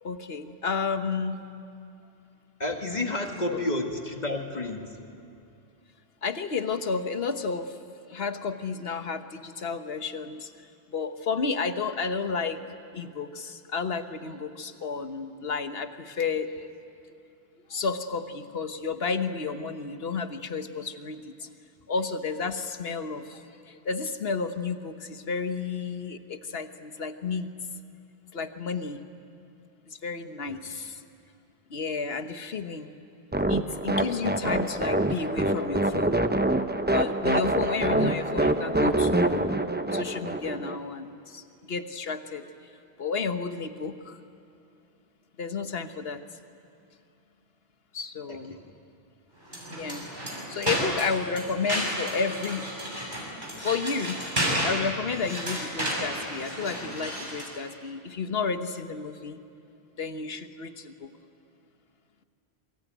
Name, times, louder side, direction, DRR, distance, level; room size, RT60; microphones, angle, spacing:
voice 1, 0.0-1.4 3.5-3.6 6.2-7.7 8.1-10.5 10.9-12.6 12.9-16.7 17.7-21.3 21.9-23.4 23.7-27.5 28.3-29.0 29.9-31.0 31.7-32.9 33.5-36.2 36.9-39.5 39.9-42.4 43.0-44.2 45.4-46.2 47.9-48.5 49.7-50.1 50.5-52.7 53.6-54.2 54.6-59.4 60.0-61.1, left 5 dB, 70° left, 9 dB, 1.5 m, -31 dB
voice 2, 2.6-5.0 30.5-30.6 48.3-48.7, left 2 dB, 45° left, 4 dB, 2.2 m, -31 dB
sound 1, 33.3-40.8, right 1 dB, 10° right, 0.8 m, -25 dB
sound 2, 49.4-57.6, equal, 50° right, 6.2 m, -32 dB
27.5 x 24.0 x 9.2 m, 2.6 s
omnidirectional pair, 1.1 m